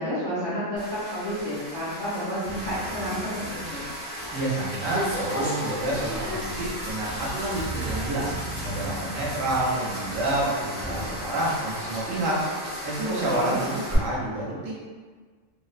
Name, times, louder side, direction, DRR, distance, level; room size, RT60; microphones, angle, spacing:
voice 1, 0.0-3.9 13.0-13.6, equal, 35° left, -12 dB, 0.6 m, -30 dB
sound 1, 0.8-13.9, equal, 10° right, 0.5 m, -35 dB
sound 2, 2.4-5.5 5.9-6.0 6.3-10.4, right 1 dB, 40° right, 0.9 m, -39 dB
voice 2, 4.3-8.4 8.6-12.4 12.8-14.7, right 1 dB, 75° right, -5 dB, 1.0 m, -28 dB
2.6 x 2.0 x 2.3 m, 1.5 s
omnidirectional pair, 1.4 m